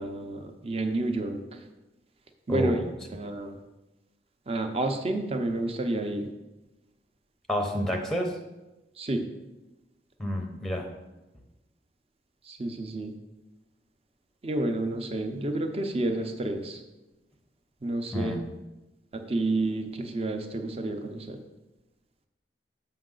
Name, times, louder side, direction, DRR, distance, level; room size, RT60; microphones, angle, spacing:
voice 1, 0.0-1.6 2.5-2.8 3.1-3.6 4.5-6.3 9.0-9.3 12.5-13.1 14.4-16.8 17.8-18.3 19.1-21.4, right 2 dB, 35° right, 6 dB, 0.6 m, -30 dB
voice 2, 2.5-2.8 7.5-8.4 10.2-10.9 18.1-18.4, equal, ahead, 3 dB, 0.6 m, -29 dB
7.0 x 5.6 x 3.8 m, 1.0 s
head